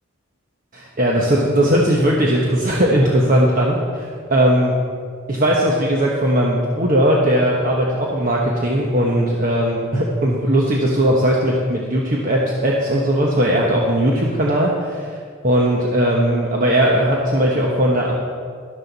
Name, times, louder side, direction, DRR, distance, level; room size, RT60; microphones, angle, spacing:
voice 1, 0.7-4.7 5.3-15.2 15.4-18.2, right 1 dB, 40° right, -2 dB, 1.1 m, -18 dB
13.0 x 11.5 x 4.1 m, 2.1 s
head